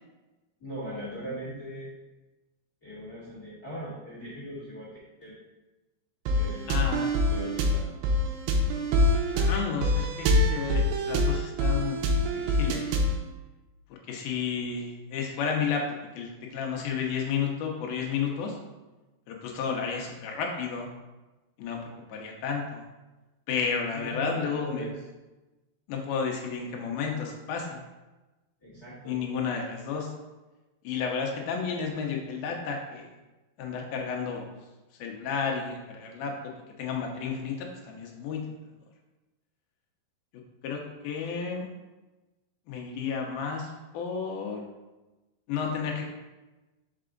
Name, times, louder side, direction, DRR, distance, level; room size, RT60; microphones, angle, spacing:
voice 1, 0.6-1.9 2.8-4.9 5.2-5.4 6.3-6.9 7.3-7.9 23.9-24.9 28.6-29.2, equal, 50° left, -7 dB, 1.0 m, -39 dB
sound 1, 6.3-13.2, left 1 dB, 90° right, 2.1 m, -25 dB
voice 2, 6.7-7.3 9.3-12.9 14.1-15.8 16.1-18.6 19.3-20.9 21.6-22.8 23.5-24.9 25.9-27.8 29.1-30.1 30.8-33.1 33.6-34.5 35.0-36.3 36.8-38.6 40.6-41.7 42.7-44.7 45.5-46.0, left 6 dB, 80° left, 1 dB, 2.2 m, -32 dB
5.8 x 4.7 x 3.8 m, 1.1 s
omnidirectional pair, 5.2 m